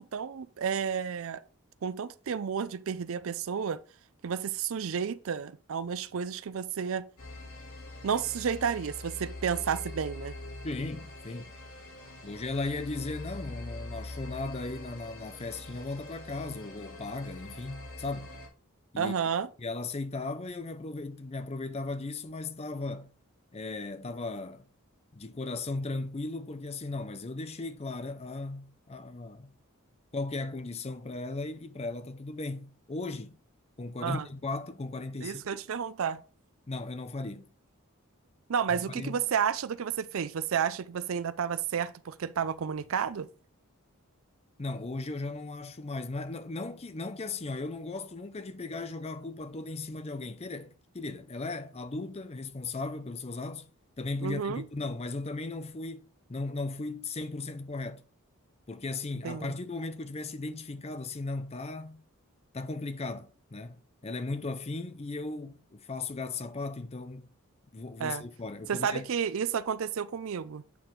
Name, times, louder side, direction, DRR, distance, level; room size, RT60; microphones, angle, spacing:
voice 1, 0.0-1.4 1.8-3.8 4.2-7.1 8.0-10.4 19.0-19.5 34.0-34.3 35.2-36.2 38.5-43.3 54.2-54.6 59.2-59.5 68.0-68.2 68.7-70.6, right 7 dB, 65° right, 0.4 m, -31 dB
sound 1, 7.2-18.5, left 2 dB, 70° left, 3.3 m, -44 dB
voice 2, 10.6-11.5 12.2-18.3 18.9-19.1 19.6-23.1 23.5-24.7 25.1-29.5 30.1-33.4 33.8-35.6 36.7-37.5 38.9-39.2 44.6-53.7 54.0-58.0 58.7-62.0 62.5-67.3 67.7-69.1, left 3 dB, 30° left, 0.6 m, -37 dB
8.5 x 4.4 x 3.8 m
head